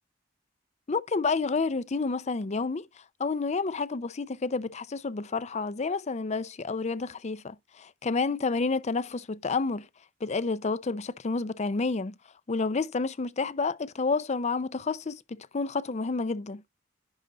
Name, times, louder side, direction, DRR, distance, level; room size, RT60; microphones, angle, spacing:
voice 1, 0.9-2.9 3.2-9.9 10.2-12.1 12.5-16.6, left 4 dB, 35° left, 0.5 m, -29 dB
10.5 x 3.9 x 4.1 m
head